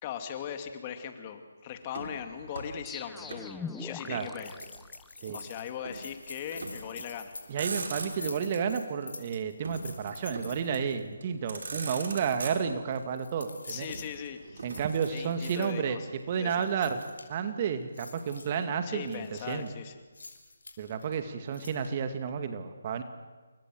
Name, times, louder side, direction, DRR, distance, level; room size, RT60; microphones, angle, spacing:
voice 1, 0.0-4.6 5.3-7.3 13.7-14.7 15.1-16.1 16.4-16.8 18.9-19.9, left 8 dB, 30° left, 6 dB, 2.6 m, -39 dB
Motor vehicle (road), 1.9-3.5 3.8-4.9 5.8-6.1 6.5-7.0 7.4-8.4 9.6-10.7 11.2-11.3 11.5-13.0 13.9-15.5, right 3 dB, 60° right, 5.4 m, -41 dB
sound 1, 2.9-5.6, left 5 dB, 5° left, 1.2 m, -42 dB
sound 2, 4.4-11.0 11.5-12.5 12.9-14.0 14.6-15.7 16.2-17.4 17.8-18.6 19.0-19.7 20.1-21.2 21.5-21.9, left 3 dB, 70° left, 5.8 m, -47 dB
voice 2, 7.5-13.9 14.6-16.0 16.3-17.0 17.3-19.7 20.8-23.0, right 7 dB, 35° right, 8 dB, 2.2 m, -31 dB
29.5 x 24.5 x 7.9 m, 1.4 s
figure-of-eight pair, 150°, 0 cm